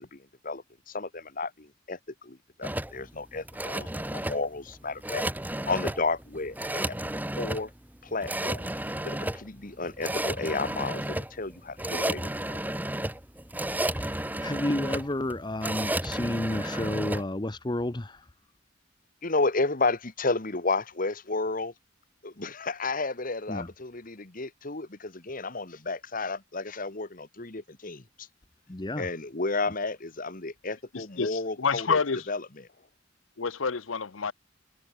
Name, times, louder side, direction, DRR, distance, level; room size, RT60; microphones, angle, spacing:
voice 1, 0.0-5.2 5.7-7.0 7.4-7.7 8.0-8.7 9.0-12.7 19.2-21.7 22.2-28.3 29.0-32.0 32.3-32.4, left 3 dB, 45° left, 1.6 m, -32 dB
sound 1, 2.6-17.2, right 1 dB, 10° right, 2.9 m, -32 dB
voice 2, 14.1-18.2 23.5-23.7 28.7-29.1, left 1 dB, 20° left, 0.9 m, -31 dB
voice 3, 30.9-32.3 33.4-34.3, left 5 dB, 80° left, 0.9 m, -28 dB
head